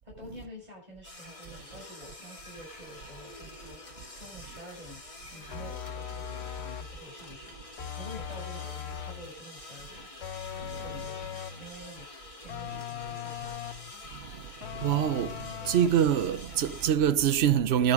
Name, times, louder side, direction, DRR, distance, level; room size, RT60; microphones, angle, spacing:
voice 1, 0.0-5.0 5.3-10.1 10.6-12.1 12.4-13.6, equal, 40° right, 6.4 m, -48 dB
sound 1, 1.0-16.9, left 2 dB, 30° left, 2.5 m, -47 dB
sound 2, 5.5-7.0 7.8-9.3 10.2-11.7 12.5-13.9 14.6-16.1, left 9 dB, 75° left, 1.0 m, -39 dB
voice 2, 14.8-15.3 15.7-17.9, right 9 dB, 75° right, 1.0 m, -24 dB
13.0 x 7.1 x 5.0 m
omnidirectional pair, 1.1 m